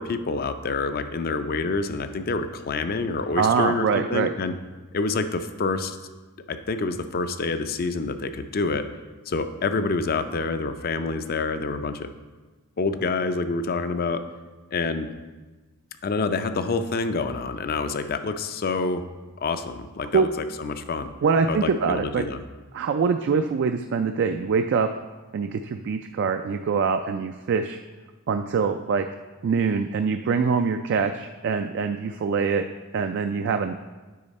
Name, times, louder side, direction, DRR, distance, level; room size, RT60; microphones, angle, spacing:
voice 1, 0.0-4.5 4.9-6.0 6.5-8.8 9.3-12.1 12.8-14.2 14.7-15.1 16.0-19.0 19.4-21.1 21.5-22.4, left 4 dB, 45° left, 9 dB, 0.4 m, -27 dB
voice 2, 3.4-4.3 20.1-20.3 21.2-22.2 22.7-24.9 25.3-27.8 28.3-29.1 29.4-32.6 32.9-33.7, right 5 dB, 55° right, 7 dB, 0.3 m, -24 dB
8.5 x 5.6 x 4.1 m, 1.3 s
head